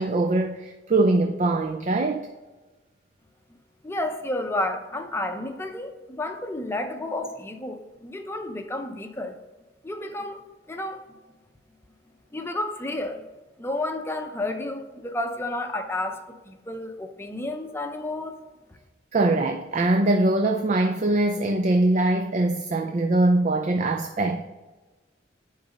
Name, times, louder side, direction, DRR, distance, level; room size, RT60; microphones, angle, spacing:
voice 1, 0.0-2.3 19.1-24.4, right 2 dB, 40° right, 5 dB, 0.5 m, -22 dB
voice 2, 3.8-9.4 9.8-11.0 12.3-13.2 13.6-18.4, left 1 dB, 15° left, 5 dB, 0.7 m, -31 dB
10.0 x 4.0 x 5.4 m, 1.2 s
head